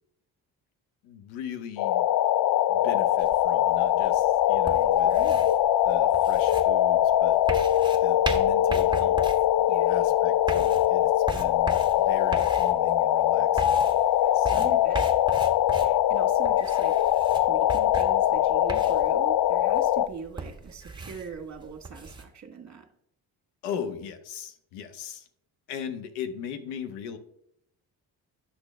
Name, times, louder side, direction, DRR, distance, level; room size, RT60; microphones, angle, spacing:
voice 1, 1.0-2.0 2.7-5.1 5.8-7.4 8.0-9.2 9.9-13.9 14.3-14.8 23.6-25.3 25.7-27.2, left 8 dB, 80° left, 10 dB, 1.0 m, -39 dB
sound 1, 1.8-20.1, left 12 dB, 50° left, 0.5 m, -22 dB
sound 2, 3.2-22.2, right 3 dB, 10° right, 1.7 m, -39 dB
voice 2, 5.0-5.5 9.7-10.2 14.2-15.2 15.8-17.0 17.5-22.9, right 6 dB, 35° right, 5 dB, 1.5 m, -42 dB
9.6 x 6.2 x 3.4 m, 0.73 s
hypercardioid pair, 50°, 49 cm